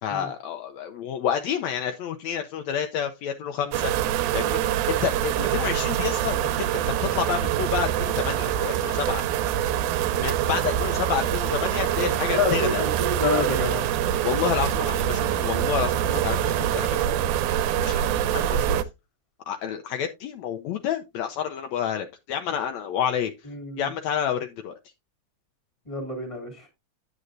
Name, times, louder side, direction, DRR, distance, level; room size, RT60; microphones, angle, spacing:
voice 1, 0.0-3.9 4.3-6.4 6.7-9.2 10.2-12.8 14.2-17.2 17.8-18.0 18.3-18.8 19.5-23.3 23.8-24.8, left 8 dB, 75° left, 1.8 m, -29 dB
sound 1, 3.7-18.8, right 11 dB, 80° right, 2.2 m, -25 dB
voice 2, 12.3-13.9 23.5-23.9 25.9-26.7, left 3 dB, 10° left, 2.4 m, -27 dB
9.7 x 8.9 x 2.6 m
omnidirectional pair, 3.5 m